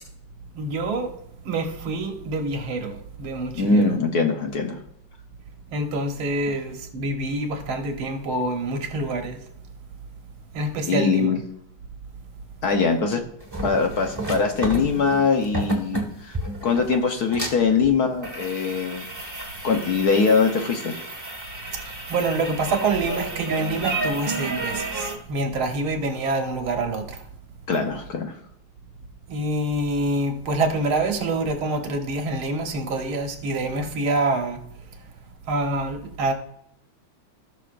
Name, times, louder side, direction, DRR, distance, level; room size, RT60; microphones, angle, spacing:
voice 1, 0.6-1.2 1.5-3.9 5.7-9.4 10.5-11.3 21.7-27.3 29.3-34.6 35.5-36.3, right 2 dB, 85° right, 2.0 m, -26 dB
voice 2, 3.5-4.8 6.5-6.6 10.9-11.4 12.6-13.2 13.6-16.4 16.6-19.0 19.6-21.0 27.7-28.4, left 4 dB, 60° left, 1.2 m, -22 dB
sound 1, 13.4-25.2, right 2 dB, 10° right, 1.3 m, -31 dB
17.0 x 6.2 x 2.5 m
omnidirectional pair, 2.2 m